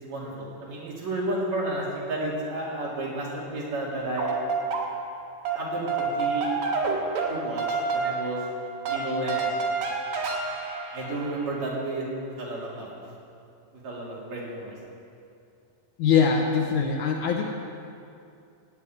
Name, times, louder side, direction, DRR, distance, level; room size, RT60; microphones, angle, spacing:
voice 1, 0.0-4.4 5.5-6.5 7.3-8.4 8.9-9.5 10.9-13.1 13.8-14.7, right 1 dB, 50° right, -5 dB, 3.8 m, -32 dB
sound 1, 4.0-5.2 5.4-11.6, right 4 dB, 80° right, 3.4 m, -29 dB
voice 2, 16.0-17.4, left 6 dB, 70° left, 2 dB, 2.1 m, -22 dB
17.0 x 6.1 x 9.3 m, 2.5 s
omnidirectional pair, 4.1 m